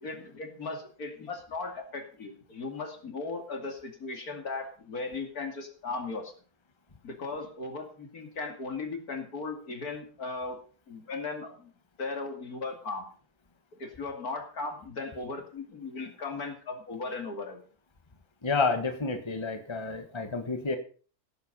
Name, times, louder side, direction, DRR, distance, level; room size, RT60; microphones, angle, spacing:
voice 1, 0.0-6.3 7.0-10.6 10.9-11.7 12.0-13.1 13.8-17.7, left 3 dB, 75° left, 4 dB, 3.1 m, -37 dB
voice 2, 18.4-20.8, left 4 dB, 20° left, 6 dB, 1.5 m, -29 dB
16.5 x 8.1 x 5.5 m, 0.40 s
omnidirectional pair, 1.6 m